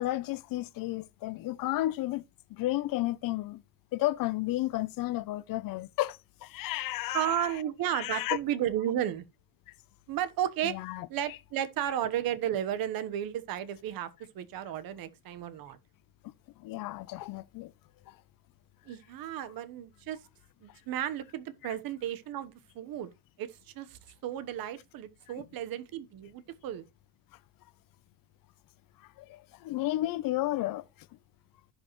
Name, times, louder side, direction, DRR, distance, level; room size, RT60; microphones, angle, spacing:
voice 1, 0.0-2.2 2.5-3.6 3.9-7.3 7.9-8.4 10.6-11.1 16.6-17.7 18.1-18.2 29.2-30.8, left 16 dB, 65° left, 0.6 m, -32 dB
voice 2, 7.1-9.2 10.1-10.8 11.1-15.8 18.9-20.2 20.6-23.1 23.4-26.9, right 11 dB, 70° right, 1.1 m, -33 dB
15.0 x 5.3 x 3.0 m
cardioid pair, 175°, 37 cm